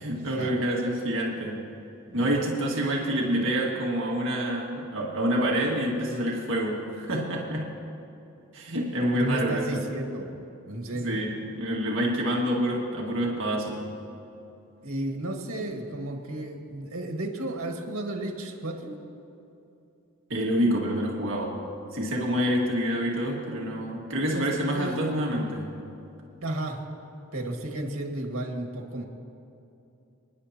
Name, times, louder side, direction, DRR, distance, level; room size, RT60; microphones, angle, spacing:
voice 1, 0.0-1.6 2.1-7.7 8.5-9.8 11.0-13.8 20.3-21.6 21.9-25.7, equal, 60° right, -2 dB, 1.8 m, -27 dB
voice 2, 2.1-2.4 9.2-10.4 10.6-11.2 14.8-19.0 24.3-24.4 24.7-25.0 26.4-26.8 27.3-29.0, right 1 dB, 80° right, 1 dB, 1.8 m, -33 dB
29.0 x 9.9 x 2.9 m, 2.8 s
head